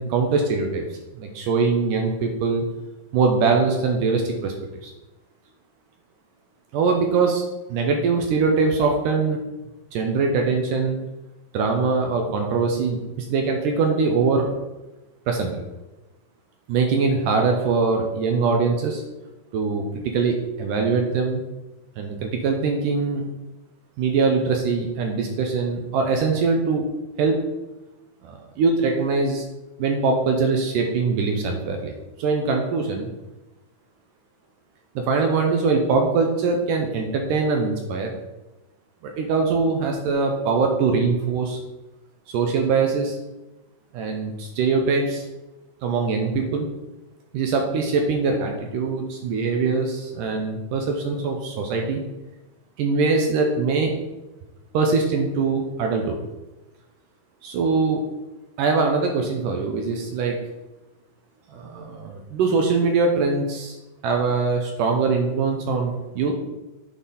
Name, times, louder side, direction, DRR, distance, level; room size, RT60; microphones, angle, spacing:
voice 1, 0.0-2.6 3.1-4.9 6.7-9.4 9.9-11.0 11.5-14.5 15.3-15.6 16.7-19.0 19.5-21.4 22.0-23.2 24.0-26.8 27.2-27.4 28.2-29.4 29.8-31.9 32.2-33.1 35.0-38.1 39.0-41.6 42.3-43.2 43.9-45.3 45.8-46.7 47.3-52.0 52.8-53.9 54.7-56.2 57.4-58.0 58.6-60.4 61.5-63.8 64.0-66.4, right 4 dB, 75° right, 2 dB, 2.0 m, -22 dB
9.3 x 4.0 x 4.1 m, 1.0 s
omnidirectional pair, 4.4 m